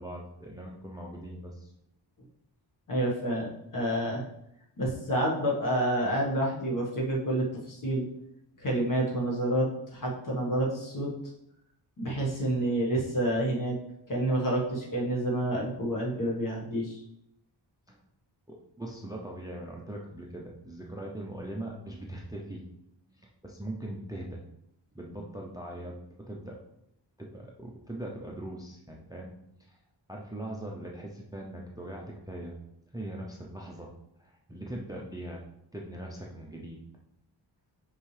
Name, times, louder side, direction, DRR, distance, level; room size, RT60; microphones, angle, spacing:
voice 1, 0.0-1.7 17.9-18.0 18.5-22.6 23.1-24.4 24.9-26.6 27.2-29.3 29.6-29.8 30.1-32.5 32.9-33.9 34.2-35.4 35.7-36.8, right 1 dB, 10° right, 0 dB, 0.5 m, -41 dB
voice 2, 2.9-4.2 4.8-8.1 8.6-11.1 12.0-13.8 14.1-17.0, right 1 dB, 45° left, -3 dB, 1.5 m, -29 dB
5.8 x 5.5 x 3.3 m, 0.80 s
wide cardioid pair, 175°, 44 cm